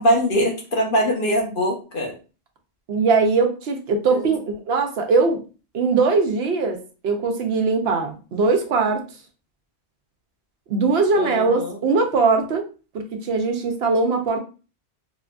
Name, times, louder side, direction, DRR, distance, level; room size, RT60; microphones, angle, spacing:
voice 1, 0.0-2.1 4.1-4.3 11.1-11.8, equal, 55° left, 0 dB, 0.9 m, -22 dB
voice 2, 2.9-5.4 5.7-9.0 10.7-12.7 12.9-14.4, right 4 dB, 70° right, 4 dB, 0.9 m, -21 dB
2.9 x 2.4 x 2.2 m, 0.34 s
omnidirectional pair, 1.1 m